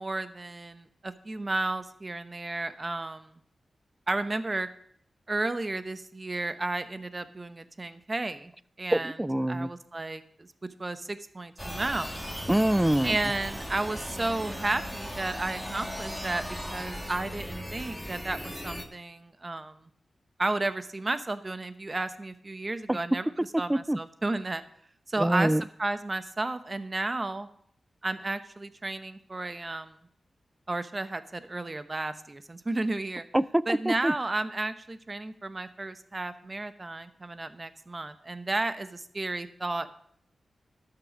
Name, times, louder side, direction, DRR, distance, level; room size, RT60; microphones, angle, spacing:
voice 1, 0.0-3.4 4.1-4.7 5.3-8.5 8.8-9.2 9.5-10.5 10.8-12.2 13.0-16.4 16.7-19.9 20.4-23.3 23.6-24.6 25.1-27.5 28.0-30.0 30.7-33.3 33.7-39.9, right 2 dB, 35° right, 11 dB, 0.9 m, -33 dB
voice 2, 8.9-9.7 12.5-13.2 22.9-23.0 23.7-24.0 25.2-25.6 33.3-34.1, right 1 dB, 10° right, 19 dB, 0.3 m, -25 dB
sound 1, 11.6-18.8, equal, 5° left, 1.9 m, -37 dB
12.0 x 6.7 x 6.1 m, 0.66 s
cardioid pair, 60°, 0 cm